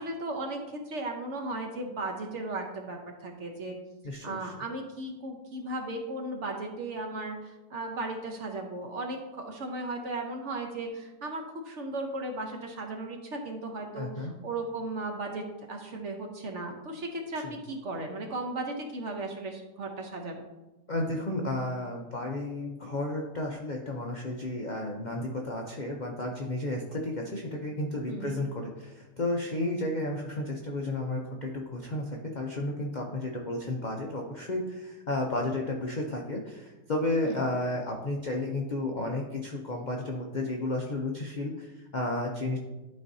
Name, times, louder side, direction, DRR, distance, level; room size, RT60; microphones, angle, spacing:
voice 1, 0.0-3.8 4.2-20.4 28.1-28.4 37.2-37.4, right 2 dB, 55° right, 2 dB, 1.0 m, -36 dB
voice 2, 4.0-4.5 14.0-14.3 17.4-17.6 20.9-42.6, left 2 dB, 55° left, 0 dB, 0.5 m, -32 dB
11.5 x 4.2 x 2.7 m, 1.0 s
omnidirectional pair, 1.8 m